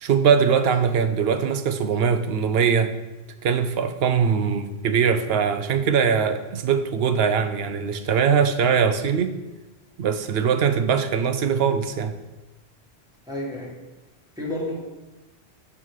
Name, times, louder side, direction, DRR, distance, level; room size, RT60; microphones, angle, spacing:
voice 1, 0.0-2.9 3.4-9.4 10.0-12.2, right 6 dB, 70° right, 9 dB, 0.8 m, -21 dB
voice 2, 13.3-13.8 14.3-14.7, left 1 dB, 5° right, -5 dB, 1.5 m, -30 dB
6.0 x 5.6 x 4.7 m, 1.1 s
omnidirectional pair, 1.1 m